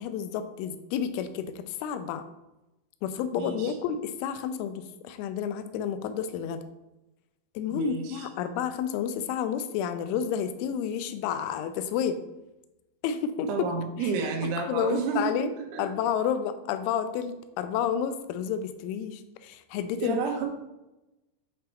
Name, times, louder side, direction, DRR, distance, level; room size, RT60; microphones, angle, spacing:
voice 1, 0.0-2.2 3.0-6.6 7.6-12.2 13.0-13.5 14.0-14.1 14.4-15.5 15.8-20.2, left 8 dB, 90° left, 10 dB, 3.0 m, -30 dB
voice 2, 3.3-3.8 7.7-8.3 13.5-15.8 20.0-20.5, right 5 dB, 75° right, 0 dB, 2.5 m, -31 dB
7.5 x 3.5 x 4.4 m, 0.99 s
omnidirectional pair, 5.4 m